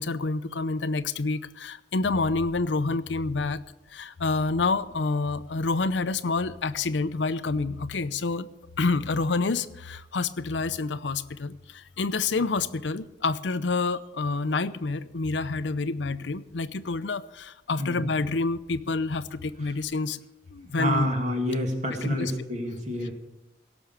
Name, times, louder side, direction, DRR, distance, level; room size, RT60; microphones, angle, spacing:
voice 1, 0.0-3.6 3.9-8.5 8.8-11.5 12.0-20.2 20.5-21.1 21.9-22.3, left 3 dB, 90° left, 13 dB, 0.7 m, -28 dB
voice 2, 20.8-23.1, equal, 40° right, 2 dB, 2.6 m, -28 dB
17.5 x 6.3 x 9.5 m, 0.94 s
head